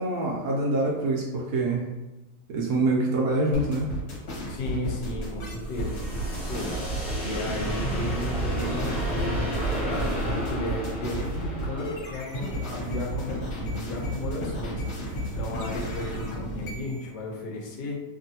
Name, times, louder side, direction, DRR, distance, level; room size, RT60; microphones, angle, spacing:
voice 1, 0.0-1.9 2.5-3.9, right 2 dB, 70° right, -3 dB, 1.0 m, -25 dB
sound 1, 3.5-17.0, equal, 50° left, 1.2 m, -33 dB
voice 2, 4.5-6.8 7.2-14.8 15.2-18.0, left 1 dB, 75° left, 0 dB, 1.1 m, -34 dB
sound 2, 4.5-13.3, right 1 dB, 30° left, 1.2 m, -32 dB
2.9 x 2.5 x 2.7 m, 1.1 s
omnidirectional pair, 1.9 m